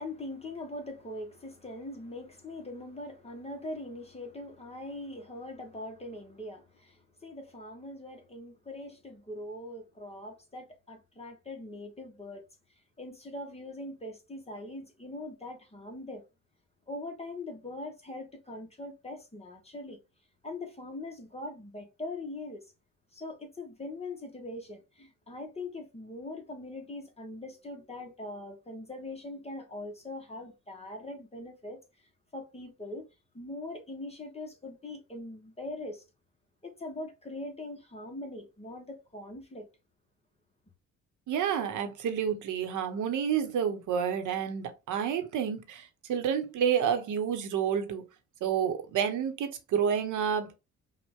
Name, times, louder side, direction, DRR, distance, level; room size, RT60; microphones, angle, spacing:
voice 1, 0.0-12.4 13.0-16.2 16.9-20.0 20.4-22.7 23.1-33.1 33.3-36.0 36.6-39.7, left 2 dB, 20° left, 1.3 m, -42 dB
voice 2, 41.3-48.0 48.4-50.5, right 8 dB, 80° right, 1.2 m, -29 dB
5.7 x 2.5 x 3.6 m
cardioid pair, 90°, 30 cm